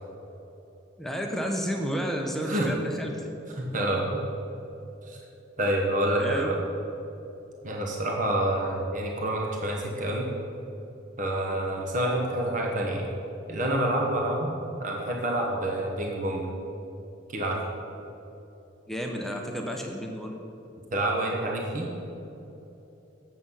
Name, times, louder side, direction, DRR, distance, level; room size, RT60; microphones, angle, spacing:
voice 1, 1.0-3.3 3.7-3.8 6.2-6.5 18.9-20.4, equal, ahead, 1 dB, 0.7 m, -31 dB
voice 2, 3.6-4.2 5.1-5.2 5.6-6.6 7.6-10.3 11.2-13.1 13.5-14.5 14.8-16.5 17.3-17.6 20.9-21.9, right 1 dB, 45° right, -1 dB, 1.1 m, -27 dB
8.5 x 7.5 x 5.6 m, 3.0 s
head